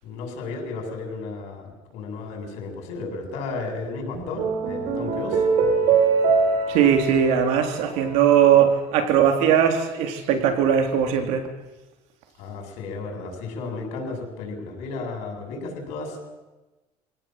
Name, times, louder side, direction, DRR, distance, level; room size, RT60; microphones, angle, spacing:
voice 1, 0.0-5.4 12.4-16.2, left 3 dB, 85° left, 2 dB, 7.5 m, -33 dB
sound 1, 4.1-8.7, right 5 dB, 65° right, 5.2 m, -23 dB
voice 2, 6.7-11.5, right 8 dB, 85° right, 6 dB, 3.8 m, -19 dB
25.5 x 17.5 x 7.8 m, 1.1 s
cardioid pair, 135°, 11 cm